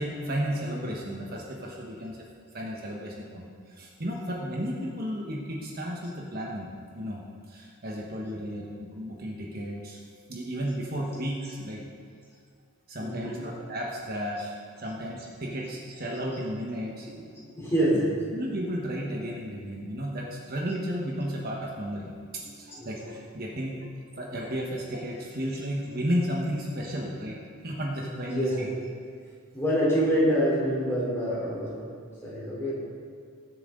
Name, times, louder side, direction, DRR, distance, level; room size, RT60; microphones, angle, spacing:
voice 1, 0.0-2.2 2.5-7.2 7.5-10.0 10.3-11.8 12.9-17.1 18.3-23.8 24.2-27.4 27.6-28.7, equal, 45° right, -2 dB, 1.4 m, -33 dB
voice 2, 13.0-13.5 17.1-18.2 22.7-23.0 24.1-24.2 28.2-28.7 29.5-31.8 32.2-32.7, equal, 10° left, -7 dB, 3.7 m, -26 dB
20.5 x 7.6 x 3.9 m, 2.1 s
head